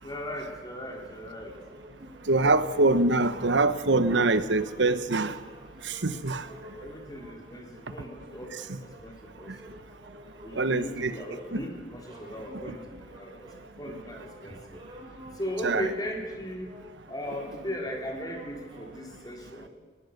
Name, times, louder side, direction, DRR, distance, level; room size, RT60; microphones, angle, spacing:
voice 1, 0.0-1.5 6.4-8.6 9.0-9.7 10.4-13.5 13.8-14.8 15.4-16.7 17.1-19.7, equal, 20° left, 0 dB, 4.0 m, -37 dB
sound 1, 0.8-19.1, equal, 30° right, 4.9 m, -51 dB
voice 2, 2.3-5.3 6.0-6.4 10.6-11.1 11.5-11.6 12.7-12.8 15.6-15.9, right 2 dB, 80° right, 12 dB, 1.1 m, -24 dB
20.5 x 20.0 x 6.7 m, 1.4 s
head